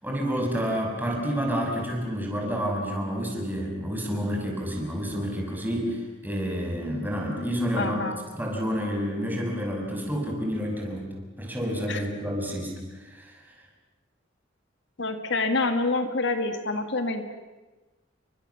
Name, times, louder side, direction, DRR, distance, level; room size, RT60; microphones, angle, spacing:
voice 1, 0.0-8.0 8.3-11.1 11.4-12.7 13.1-13.3, equal, 10° right, 0 dB, 6.3 m, -29 dB
voice 2, 7.8-8.2 11.9-12.0 15.0-17.2, left 3 dB, 65° left, 7 dB, 2.1 m, -27 dB
29.5 x 25.0 x 7.2 m, 1.2 s
head